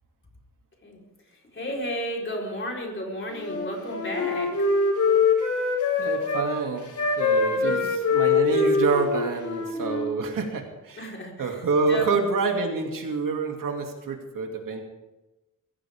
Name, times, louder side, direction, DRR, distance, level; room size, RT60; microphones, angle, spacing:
voice 1, 1.3-4.7 7.5-7.9 11.0-12.1, equal, 40° left, -1 dB, 4.3 m, -33 dB
Wind instrument woodwind instrument, 3.3-6.5 6.9-10.1, left 4 dB, 65° left, 4.2 m, -24 dB
voice 2, 6.0-6.9 7.2-11.0 11.4-14.8, right 4 dB, 85° right, 2 dB, 2.6 m, -27 dB
22.5 x 15.5 x 3.6 m, 1.0 s
wide cardioid pair, 135°, 32 cm